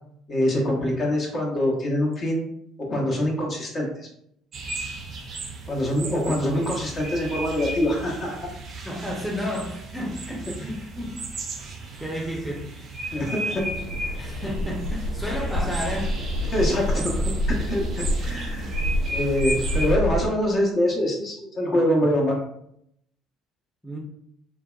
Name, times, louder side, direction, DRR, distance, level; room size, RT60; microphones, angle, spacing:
voice 1, 0.3-2.4 2.8-3.9 5.7-8.3 13.1-13.7 16.5-17.1 17.7-18.8 19.1-22.4, equal, 45° left, -2 dB, 0.9 m, -24 dB
sound 1, 4.5-20.0, right 2 dB, 50° right, 0.5 m, -35 dB
voice 2, 8.8-11.2 12.0-12.7 13.5-13.6 14.2-16.3 23.8-24.0, equal, ahead, -2 dB, 0.6 m, -32 dB
sound 2, 13.6-20.3, equal, 90° right, 0.7 m, -27 dB
2.6 x 2.2 x 2.3 m, 0.74 s
hypercardioid pair, 65°, 0 cm